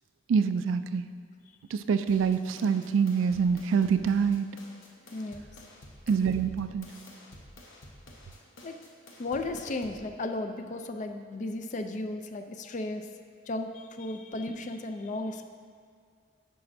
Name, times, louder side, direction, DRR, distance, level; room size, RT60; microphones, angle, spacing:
voice 1, 0.3-1.1 1.7-4.5 6.1-6.9, right 6 dB, 85° right, 11 dB, 0.3 m, -26 dB
sound 1, 2.1-10.1, left 1 dB, 85° left, 1.0 m, -51 dB
voice 2, 5.1-5.5 8.6-8.8 9.2-13.1 13.5-15.4, left 2 dB, 40° left, 7 dB, 0.4 m, -35 dB
10.0 x 5.9 x 2.6 m, 2.2 s
head